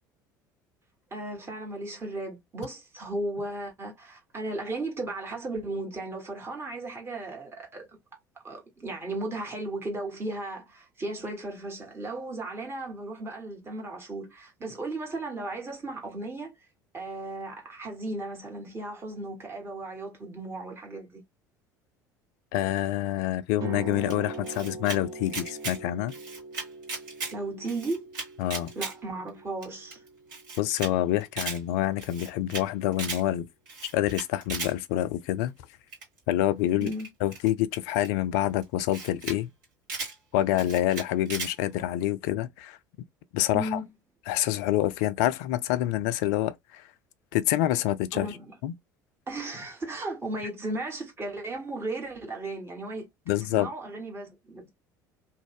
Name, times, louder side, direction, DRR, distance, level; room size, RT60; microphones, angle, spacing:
voice 1, 1.1-7.9 8.4-16.5 16.9-21.2 27.3-28.1 28.7-30.0 36.8-37.1 43.5-43.8 48.1-48.5 49.3-53.1 53.4-54.7, right 2 dB, 25° right, 1.3 m, -35 dB
voice 2, 22.5-26.1 28.4-28.7 30.6-33.5 33.8-35.5 36.3-36.9 37.2-39.5 40.3-42.8 43.3-43.8 44.3-46.8 47.3-48.3 48.6-48.7 53.3-53.7, left 13 dB, 55° left, 0.3 m, -27 dB
sound 1, 23.5-31.6, right 3 dB, 40° right, 0.7 m, -42 dB
Camera, 24.1-25.0 25.3-25.8 26.1-27.3 27.6-28.9 29.3-29.4 29.6-29.7 29.9-30.0 30.3-30.9 31.2-31.6 32.0-32.6 32.9-33.2 33.7-34.7 35.9-36.2 36.8-38.1 38.6-38.7 38.9-39.4 39.6-40.1 40.5-41.5, right 3 dB, 60° right, 1.4 m, -36 dB
2.5 x 2.1 x 3.1 m
figure-of-eight pair, 65°, 10 cm